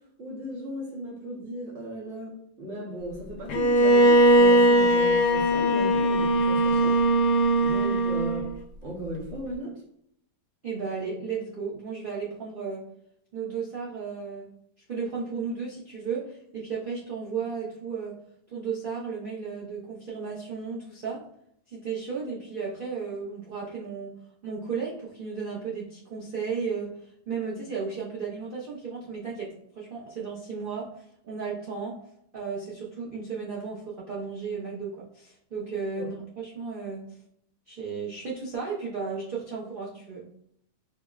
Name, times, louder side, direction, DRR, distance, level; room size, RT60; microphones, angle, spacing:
voice 1, 0.2-7.0 7.6-8.5 8.8-9.7 35.9-36.1, equal, 55° right, -3 dB, 0.9 m, -36 dB
Bowed string instrument, 3.5-8.5, right 1 dB, 80° left, 1.1 m, -20 dB
voice 2, 10.6-12.9 13.3-14.5 14.9-18.2 18.5-21.2 21.7-24.2 24.4-32.0 32.3-37.2 37.7-40.3, right 5 dB, 75° right, -6 dB, 0.4 m, -34 dB
5.6 x 2.0 x 2.3 m, 0.70 s
omnidirectional pair, 1.7 m